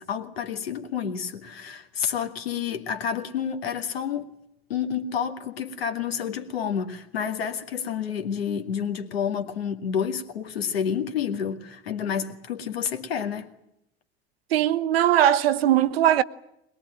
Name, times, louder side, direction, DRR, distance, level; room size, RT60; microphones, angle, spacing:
voice 1, 0.0-4.3 4.7-13.5, left 7 dB, 70° left, 2.3 m, -29 dB
voice 2, 14.5-16.2, right 11 dB, 65° right, 1.0 m, -20 dB
22.0 x 22.0 x 8.9 m
figure-of-eight pair, 65°, 31 cm